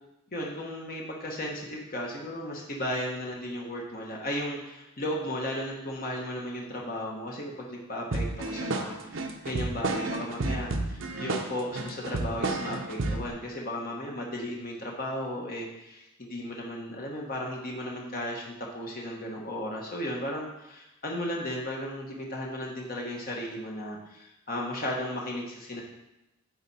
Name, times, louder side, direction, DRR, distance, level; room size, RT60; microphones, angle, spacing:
voice 1, 0.3-25.8, left 1 dB, 40° left, -1 dB, 1.2 m, -35 dB
sound 1, 8.1-13.3, right 2 dB, 60° right, 0.7 m, -31 dB
9.0 x 4.4 x 4.2 m, 0.90 s
head